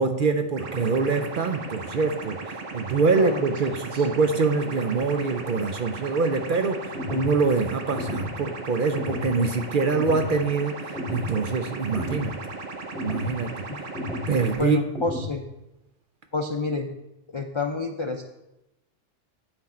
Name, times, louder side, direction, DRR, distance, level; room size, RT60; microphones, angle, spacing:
voice 1, 0.0-12.3 13.0-13.6 14.3-14.8, right 4 dB, 55° right, 7 dB, 0.6 m, -24 dB
sound 1, 0.6-14.6, right 3 dB, 85° right, 1.3 m, -37 dB
voice 2, 3.2-3.5 3.9-4.0 13.7-13.8 14.6-15.4 16.3-16.9 17.3-18.2, left 3 dB, 50° left, 4 dB, 0.3 m, -29 dB
sound 2, 6.9-7.4 7.9-8.4 8.9-9.4 9.9-10.3 10.9-11.4 11.9-12.3 13.0-13.4 13.9-14.4 14.9-15.4, left 2 dB, ahead, 0.7 m, -33 dB
9.0 x 6.0 x 4.3 m, 0.95 s
omnidirectional pair, 1.3 m